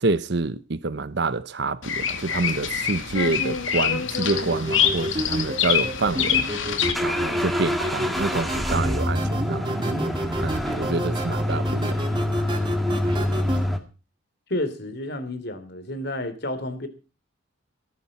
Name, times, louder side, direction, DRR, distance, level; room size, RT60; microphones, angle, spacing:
voice 1, 0.0-6.5 7.0-10.0 10.4-12.2, right 3 dB, 60° right, 0.8 m, -27 dB
Bird vocalization bird call bird song, 1.8-6.9, left 8 dB, 75° left, 2.2 m, -25 dB
sound 1, 4.3-13.7, equal, 25° right, 2.8 m, -30 dB
sound 2, 6.6-13.8, equal, ahead, 2.0 m, -26 dB
voice 2, 14.5-16.9, left 1 dB, 55° left, 3.1 m, -31 dB
16.5 x 14.5 x 4.2 m
head